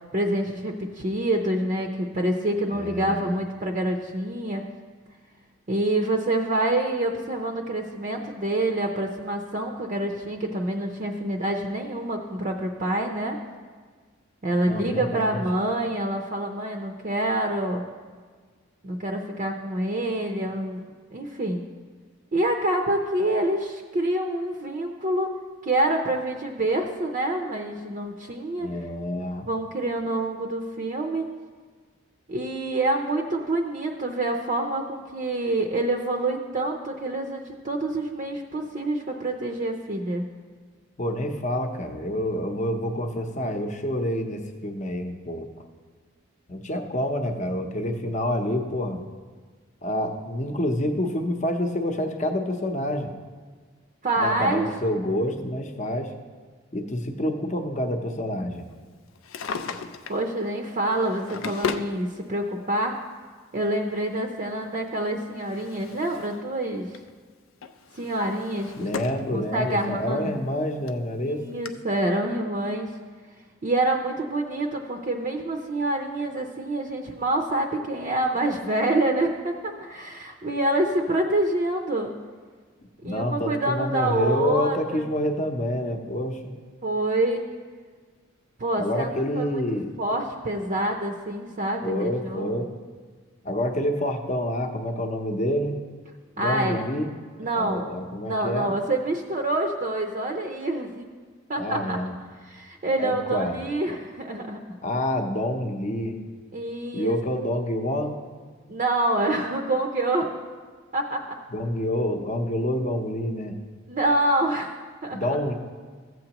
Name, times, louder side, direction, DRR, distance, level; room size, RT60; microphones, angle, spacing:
voice 1, 0.1-4.6 5.7-13.4 14.4-17.8 18.8-20.8 21.1-21.6 22.3-25.3 25.6-28.7 29.5-31.3 32.3-40.2 54.0-54.6 60.1-63.0 63.5-66.9 67.9-68.9 69.3-70.3 71.2-73.0 73.6-82.1 83.0-85.0 86.8-87.4 88.6-89.1 89.4-89.6 90.0-92.6 96.4-96.9 97.4-97.9 98.2-101.0 101.5-102.0 102.4-104.6 106.5-107.2 108.7-110.3 110.9-111.2 113.9-115.4, right 1 dB, 40° right, 2 dB, 0.5 m, -26 dB
voice 2, 2.7-3.4 14.6-15.4 28.6-29.4 41.0-45.5 46.5-49.0 49.8-53.1 54.2-56.1 56.7-58.7 68.8-71.4 83.0-86.5 88.8-89.9 91.8-92.7 93.4-95.8 96.4-97.1 97.5-98.7 101.6-102.1 103.0-103.6 104.8-106.2 106.9-108.1 111.5-113.6 115.1-115.5, left 1 dB, 35° left, 4 dB, 0.7 m, -28 dB
Drawer open or close, 59.1-60.2 61.0-61.9 63.0-63.1 64.9-66.4 66.7-67.1 67.6-69.3 69.7-69.8 70.5-70.6 70.9-71.0 71.6-71.7, left 5 dB, 80° left, 0.5 m, -34 dB
14.5 x 7.7 x 2.9 m, 1.5 s
head